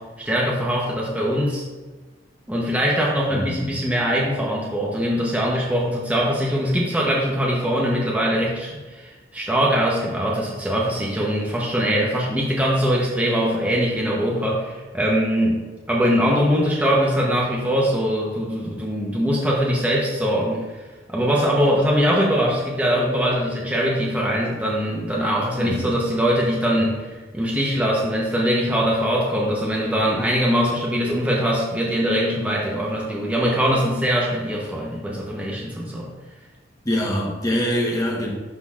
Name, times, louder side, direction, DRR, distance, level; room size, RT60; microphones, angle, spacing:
voice 1, 0.0-1.6 2.5-20.7 21.1-36.1, equal, 10° right, -3 dB, 0.8 m, -22 dB
voice 2, 3.3-3.8 25.6-25.9 36.8-38.3, equal, 20° left, -2 dB, 1.0 m, -24 dB
11.5 x 4.0 x 2.4 m, 1.3 s
head